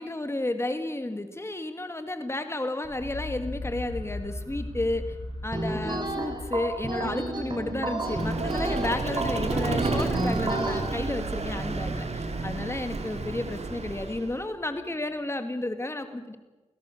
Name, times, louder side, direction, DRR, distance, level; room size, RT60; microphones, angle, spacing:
voice 1, 0.0-5.2 5.4-16.4, left 2 dB, 20° left, 8 dB, 2.0 m, -32 dB
sound 1, 2.8-14.7, left 2 dB, 40° left, 6.1 m, -41 dB
sound 2, 5.5-10.8, right 2 dB, 40° right, 7.6 m, -31 dB
Vehicle, 8.0-14.4, right 3 dB, 60° right, 2.7 m, -31 dB
23.5 x 17.0 x 6.7 m, 1.1 s
cardioid pair, 45°, 13 cm